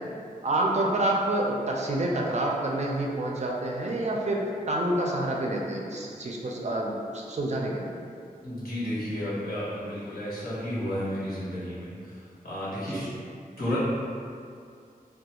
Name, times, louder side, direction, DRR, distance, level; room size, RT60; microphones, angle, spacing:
voice 1, 0.4-7.9 12.8-13.1, right 1 dB, 50° right, -2 dB, 0.4 m, -28 dB
voice 2, 8.4-13.1 13.6-13.8, equal, 80° left, -10 dB, 1.0 m, -32 dB
2.3 x 2.3 x 2.9 m, 2.3 s
wide cardioid pair, 70°, 15 cm